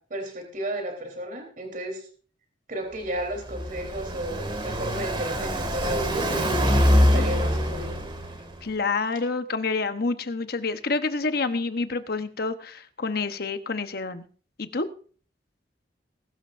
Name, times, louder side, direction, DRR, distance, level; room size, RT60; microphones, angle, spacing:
voice 1, 0.0-2.0 2.7-6.4 7.1-8.0, right 1 dB, 50° right, 3 dB, 3.6 m, -33 dB
Car passing by, 3.0-8.6, equal, 25° right, 2.1 m, -24 dB
voice 2, 8.6-14.3 14.6-14.9, left 3 dB, 55° left, 10 dB, 1.0 m, -28 dB
21.0 x 12.0 x 2.6 m, 0.42 s
head